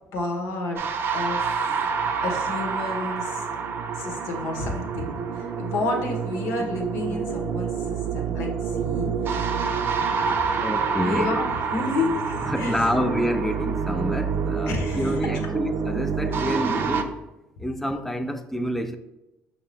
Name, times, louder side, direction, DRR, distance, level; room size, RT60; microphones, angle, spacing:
voice 1, 0.1-0.8 1.1-1.7 2.2-3.5 3.9-9.5 10.2-10.4 10.7-12.8 14.7-15.3, left 2 dB, 70° left, 1.1 m, -30 dB
sound 1, 0.8-17.0, right 5 dB, 50° right, 0.5 m, -27 dB
voice 2, 10.6-11.3 12.4-17.2 17.6-19.0, equal, 5° left, 0.4 m, -28 dB
5.7 x 2.7 x 3.4 m
supercardioid pair, 85°, 5 cm